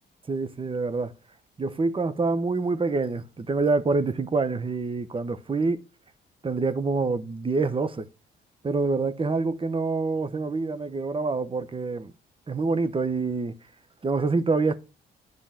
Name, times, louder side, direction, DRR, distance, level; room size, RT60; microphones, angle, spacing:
voice 1, 0.3-1.1 1.6-5.8 6.4-8.1 8.6-12.1 12.5-13.6 14.0-14.8, right 3 dB, 25° right, 1.0 m, -26 dB
10.5 x 4.0 x 7.4 m
cardioid pair, 90°, 20 cm